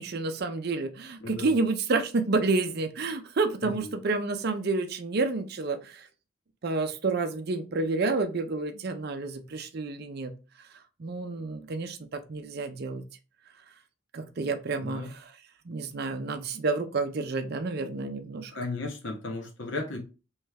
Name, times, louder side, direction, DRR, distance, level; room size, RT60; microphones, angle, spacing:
voice 1, 0.0-6.1 6.6-10.4 11.0-13.1 14.1-15.3 15.7-18.5, right 3 dB, 50° right, 0.5 m, -29 dB
voice 2, 1.2-1.5 3.6-4.0 14.8-15.1 18.5-20.0, left 3 dB, 60° left, 1.0 m, -35 dB
3.4 x 3.1 x 3.3 m
head